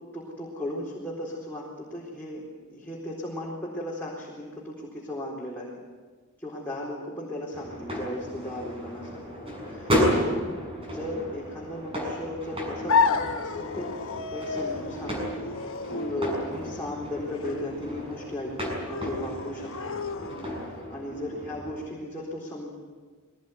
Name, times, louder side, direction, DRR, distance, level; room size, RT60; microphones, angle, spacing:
voice 1, 0.1-2.4 2.7-5.8 6.4-9.3 9.7-10.6 10.8-15.3 15.9-18.5 18.8-20.0 20.9-22.8, left 1 dB, 10° left, -5 dB, 4.1 m, -36 dB
sound 1, 7.5-21.7, equal, 25° right, 6.9 m, -33 dB
sound 2, 12.9-20.8, left 4 dB, 65° left, 1.2 m, -31 dB
22.0 x 18.5 x 9.5 m, 1.5 s
head